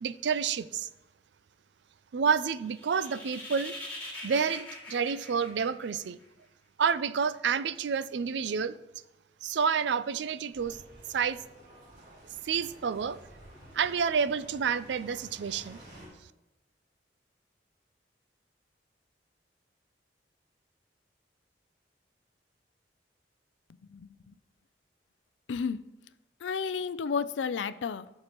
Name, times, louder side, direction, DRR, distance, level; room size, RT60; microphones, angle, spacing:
voice 1, 0.0-0.9 2.1-3.7 4.2-6.2 6.8-8.8 9.4-10.8 11.1-11.4 12.4-13.2 13.7-15.8, right 6 dB, 75° right, 0.4 m, -29 dB
sound 1, 2.6-6.2, left 1 dB, 10° left, 2.4 m, -43 dB
sound 2, 10.5-16.1, right 1 dB, 55° right, 3.2 m, -52 dB
voice 2, 25.5-25.9 26.4-28.1, left 5 dB, 85° left, 0.4 m, -32 dB
14.5 x 6.6 x 3.0 m
head